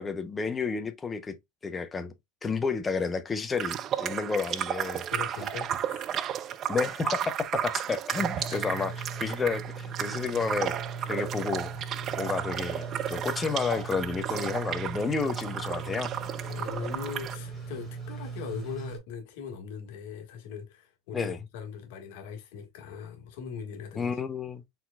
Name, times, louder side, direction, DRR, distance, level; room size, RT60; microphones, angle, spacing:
voice 1, 0.0-1.4 1.6-2.1 2.4-5.0 6.7-8.9 9.2-10.8 11.1-11.7 12.2-16.1 21.1-21.4 23.9-24.6, left 4 dB, 15° left, 0.7 m, -31 dB
sound 1, 3.5-17.4, right 10 dB, 35° right, 0.4 m, -33 dB
voice 2, 5.1-6.6 8.5-8.8 16.4-24.2, left 7 dB, 70° left, 1.6 m, -40 dB
sound 2, 8.2-19.0, right 5 dB, 10° right, 3.0 m, -39 dB
4.5 x 3.9 x 2.3 m
supercardioid pair, 140°, 0 cm